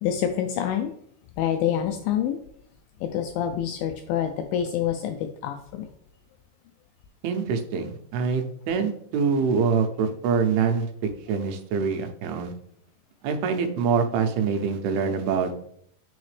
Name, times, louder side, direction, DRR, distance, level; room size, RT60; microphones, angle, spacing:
voice 1, 0.0-0.9 1.4-2.4 3.0-5.9, left 9 dB, 85° left, 6 dB, 2.0 m, -27 dB
voice 2, 7.2-10.9 11.3-12.5 13.2-15.5, right 5 dB, 85° right, 6 dB, 2.8 m, -25 dB
8.0 x 4.8 x 3.3 m, 0.67 s
omnidirectional pair, 4.5 m